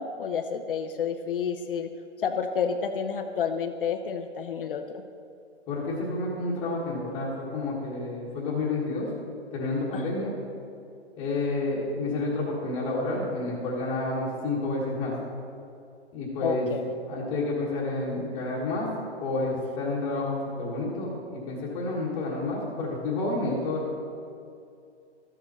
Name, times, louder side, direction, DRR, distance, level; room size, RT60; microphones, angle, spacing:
voice 1, 0.0-1.9 2.2-5.0 9.9-10.0 16.4-16.9, left 6 dB, 50° left, 6 dB, 0.6 m, -30 dB
voice 2, 5.7-9.1 9.5-10.3 11.2-15.1 16.1-16.7 17.1-18.9 19.2-23.9, left 2 dB, 15° left, -9 dB, 1.4 m, -30 dB
13.0 x 7.0 x 4.2 m, 2.5 s
hypercardioid pair, 160°, 35 cm